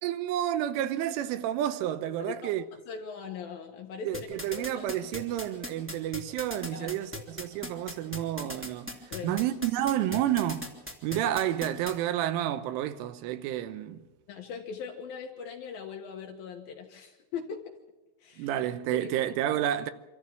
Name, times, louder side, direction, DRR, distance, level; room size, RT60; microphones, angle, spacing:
voice 1, 0.0-2.6 4.1-8.9 9.2-10.7 11.0-14.0 18.4-19.9, right 12 dB, 90° right, 3.4 m, -30 dB
voice 2, 2.2-4.3 4.6-5.1 6.7-6.9 9.1-9.3 14.3-17.7 18.2-18.5 18.9-19.1, left 6 dB, 65° left, 2.5 m, -40 dB
sound 1, 4.1-11.9, left 1 dB, 10° right, 0.8 m, -38 dB
25.0 x 14.0 x 7.6 m
omnidirectional pair, 5.6 m